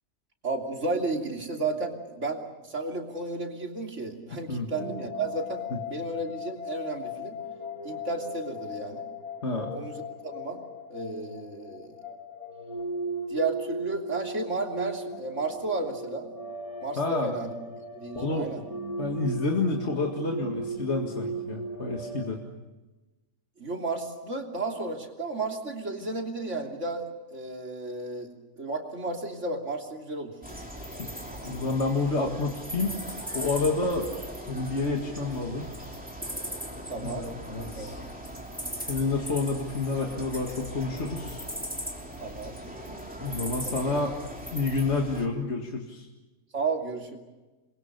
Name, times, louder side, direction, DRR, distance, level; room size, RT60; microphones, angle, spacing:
voice 1, 0.4-7.4 7.8-9.1 9.7-10.0 10.3-10.6 10.9-12.0 13.3-16.3 16.8-17.5 17.9-18.6 23.6-28.3 28.6-30.3 36.9-37.9 42.2-42.6 43.6-43.8 46.5-47.2, right 3 dB, 55° right, 1 dB, 3.5 m, -33 dB
sound 1, 4.7-22.2, equal, 75° right, 4.6 m, -37 dB
voice 2, 9.4-9.7 17.0-17.3 18.1-18.5 19.0-22.4 31.0-31.1 31.4-32.9 33.3-34.1 34.5-35.7 37.0-38.0 38.7-41.5 43.2-44.1 44.5-46.1, left 3 dB, 50° left, 1 dB, 2.3 m, -29 dB
sound 2, 30.4-45.3, equal, 5° right, 2.9 m, -38 dB
28.5 x 22.0 x 6.8 m, 1.1 s
omnidirectional pair, 1.5 m